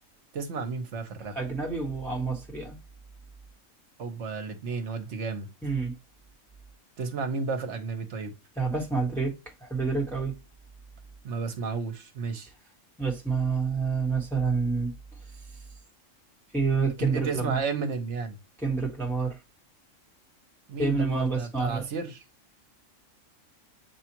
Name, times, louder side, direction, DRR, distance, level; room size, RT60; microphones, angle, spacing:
voice 1, 0.3-1.3 4.0-5.5 7.0-8.3 11.2-12.5 17.1-18.4 20.7-22.2, right 4 dB, 60° right, 1.2 m, -32 dB
voice 2, 1.3-2.8 5.6-5.9 8.6-9.3 9.6-10.4 13.0-14.9 16.5-17.6 18.6-19.4 20.8-21.8, right 4 dB, ahead, 1.2 m, -28 dB
6.9 x 2.4 x 2.8 m
omnidirectional pair, 1.4 m